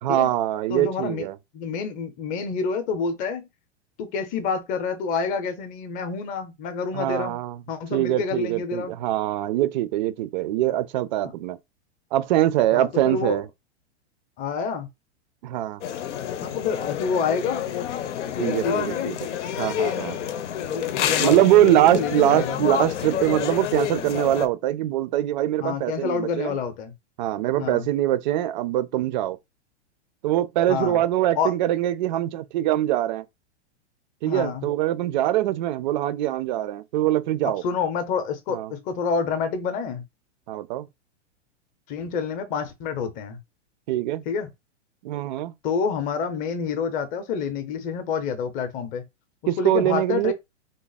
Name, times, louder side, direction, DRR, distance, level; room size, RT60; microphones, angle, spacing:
voice 1, 0.0-1.4 6.9-7.6 7.9-11.6 12.1-13.5 15.4-15.8 18.4-19.2 19.6-20.2 21.1-26.6 27.2-29.4 30.2-33.2 34.2-37.6 38.5-38.7 40.5-40.9 43.9-44.2 45.0-45.5 49.5-50.3, right 13 dB, 40° right, 0.4 m, -23 dB
voice 2, 0.7-1.3 1.5-3.5 4.0-7.4 7.7-9.0 12.7-13.4 14.4-14.9 16.4-17.6 18.4-19.2 20.6-22.6 25.6-26.9 27.6-27.9 30.7-31.0 31.4-31.5 34.3-34.7 37.4-40.1 41.9-43.4 44.3-44.5 45.6-49.0 49.6-50.3, left 5 dB, 25° left, 0.7 m, -28 dB
sound 1, 15.8-24.5, left 9 dB, 85° left, 0.7 m, -28 dB
3.5 x 2.0 x 3.9 m
supercardioid pair, 150°, 35 cm